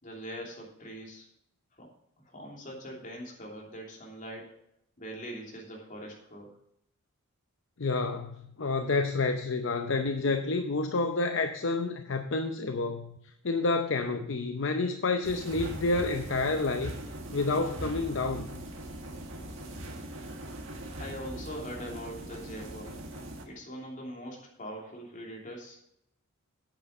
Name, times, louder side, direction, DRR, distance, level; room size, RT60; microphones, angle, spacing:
voice 1, 0.0-1.3 1.8-1.9 2.2-4.5 5.0-6.6 21.0-23.0 23.4-25.8, equal, 35° left, -2 dB, 2.9 m, -42 dB
voice 2, 7.8-13.2 13.4-16.9 17.3-18.6, left 3 dB, 55° left, 7 dB, 0.7 m, -29 dB
sound 1, 15.2-23.4, right 1 dB, 60° right, 1.8 m, -41 dB
9.0 x 8.4 x 5.4 m, 0.74 s
head